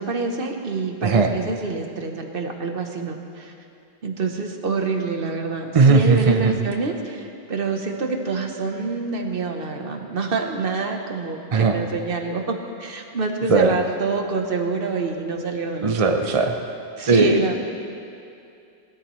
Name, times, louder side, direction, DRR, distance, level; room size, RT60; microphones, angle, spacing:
voice 1, 0.0-3.5 4.0-15.9 17.0-17.6, right 4 dB, 60° right, 3 dB, 1.2 m, -26 dB
voice 2, 5.7-6.5 11.5-11.7 13.5-13.7 15.8-16.6 17.1-17.6, right 4 dB, 35° right, 4 dB, 0.7 m, -17 dB
19.5 x 13.0 x 3.1 m, 2.5 s
omnidirectional pair, 1.1 m